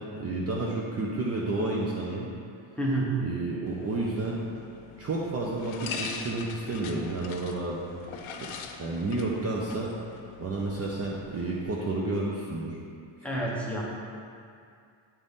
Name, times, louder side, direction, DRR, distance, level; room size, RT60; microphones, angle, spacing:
voice 1, 0.0-2.3 3.2-4.5 5.0-8.2 8.8-9.9 10.4-12.8, right 2 dB, 35° right, -3 dB, 0.5 m, -31 dB
voice 2, 2.8-3.1 8.4-8.5 13.2-13.8, right 1 dB, 5° left, -5 dB, 0.8 m, -29 dB
sound 1, 3.7-11.6, left 5 dB, 85° left, 0.7 m, -42 dB
8.7 x 4.0 x 3.6 m, 2.4 s
cardioid pair, 155°, 47 cm